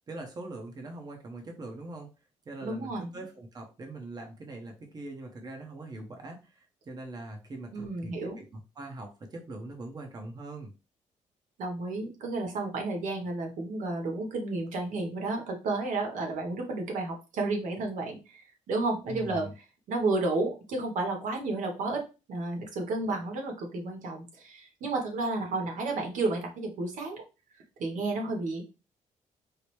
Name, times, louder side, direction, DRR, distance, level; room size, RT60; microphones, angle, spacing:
voice 1, 0.1-2.1 2.5-10.7 19.1-19.5, right 2 dB, 30° right, 3 dB, 0.8 m, -42 dB
voice 2, 2.6-3.1 7.7-8.4 11.6-22.0 22.3-27.2 27.8-28.6, right 2 dB, 80° right, 2 dB, 1.1 m, -32 dB
4.8 x 2.0 x 3.0 m, 0.30 s
cardioid pair, 125°, 13 cm